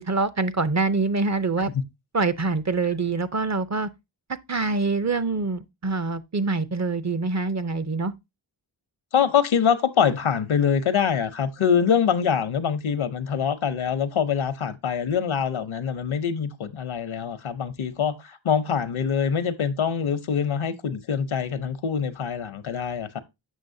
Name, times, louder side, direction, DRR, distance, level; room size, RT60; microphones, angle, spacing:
voice 1, 0.0-1.7 2.1-3.9 4.3-8.1, right 3 dB, 35° right, 0.6 m, -25 dB
voice 2, 9.1-23.2, left 7 dB, 80° left, 0.8 m, -24 dB
7.3 x 6.2 x 2.6 m
cardioid pair, 45°, 47 cm